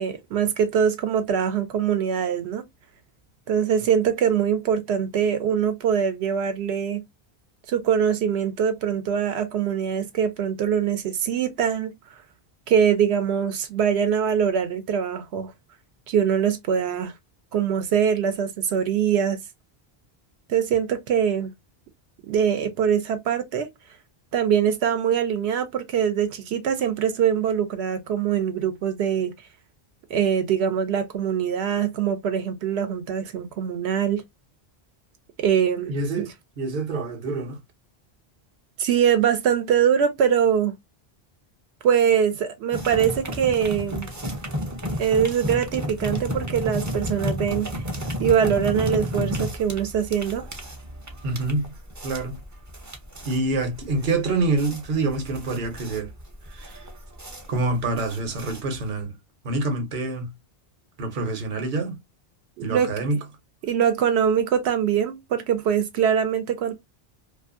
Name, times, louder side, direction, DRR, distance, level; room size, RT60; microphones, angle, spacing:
voice 1, 0.0-2.6 3.5-7.0 7.7-11.9 12.7-15.5 16.1-17.1 17.5-19.4 20.5-21.5 22.3-23.7 24.3-29.3 30.1-34.2 35.4-36.3 38.8-40.8 41.8-44.1 45.0-47.7 48.2-50.5 62.6-62.9 63.6-66.7, right 8 dB, 85° right, 0.8 m, -23 dB
voice 2, 35.9-36.3 36.6-37.6 51.2-51.7 52.0-52.4 53.2-56.1 56.5-56.8 57.5-59.1 59.4-60.3 61.0-62.0 62.6-63.2, right 2 dB, 55° right, 0.8 m, -26 dB
sound 1, 42.7-59.0, equal, 30° right, 0.3 m, -32 dB
2.5 x 2.4 x 2.4 m
omnidirectional pair, 1.1 m